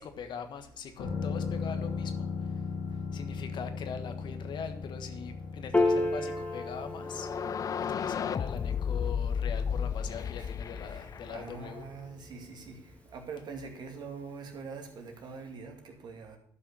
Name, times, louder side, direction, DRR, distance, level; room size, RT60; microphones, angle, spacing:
voice 1, 0.0-2.5 3.1-7.3 7.8-11.8, left 6 dB, 55° left, 8 dB, 1.4 m, -42 dB
sound 1, 1.0-12.5 12.8-12.9, left 5 dB, 80° left, 3.3 m, -39 dB
Piano, 5.7-12.4, left 2 dB, 15° left, 1.9 m, -34 dB
sound 2, 7.0-11.8, left 7 dB, 40° left, 0.4 m, -33 dB
voice 2, 11.3-12.8 13.1-16.4, right 4 dB, 50° right, 3 dB, 2.4 m, -43 dB
11.0 x 5.7 x 6.1 m, 0.65 s
hypercardioid pair, 60°, 9 cm